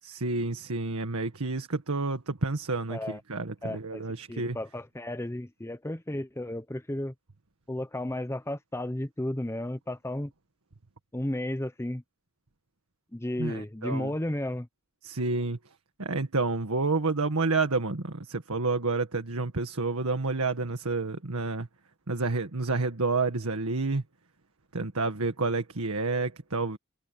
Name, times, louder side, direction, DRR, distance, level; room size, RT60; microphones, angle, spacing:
voice 1, 0.0-4.6 13.4-14.1 15.0-15.6 16.0-21.7 22.1-24.0 24.7-26.8, right 3 dB, 90° right, 1.7 m, -29 dB
voice 2, 2.9-3.2 3.6-4.0 4.3-7.1 7.7-10.3 11.1-12.0 13.1-14.7, left 1 dB, 10° left, 0.8 m, -33 dB
head